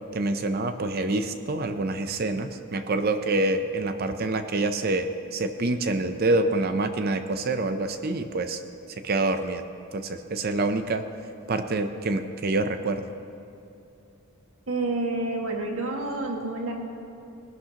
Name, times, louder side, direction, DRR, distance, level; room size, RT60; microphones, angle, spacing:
voice 1, 0.1-8.6 9.0-9.6 9.9-11.0 11.5-13.0, right 2 dB, 45° right, 8 dB, 0.5 m, -26 dB
voice 2, 14.7-16.7, right 2 dB, 70° right, 0 dB, 1.8 m, -29 dB
19.5 x 11.5 x 2.9 m, 2.7 s
head